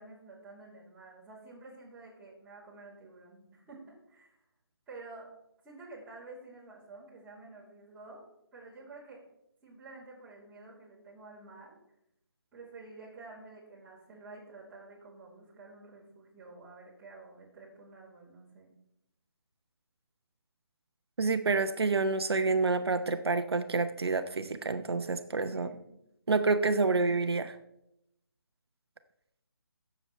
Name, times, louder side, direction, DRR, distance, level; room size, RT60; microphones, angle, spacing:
voice 1, 0.0-4.4 4.9-5.3 5.6-8.3 8.5-9.2 9.6-11.8 12.5-18.7 25.5-25.7, right 3 dB, 10° right, -9 dB, 2.9 m, -50 dB
voice 2, 21.2-25.7 26.3-27.6, right 3 dB, 85° right, 9 dB, 0.8 m, -28 dB
16.0 x 7.1 x 3.2 m, 0.80 s
hypercardioid pair, 165°, 13 cm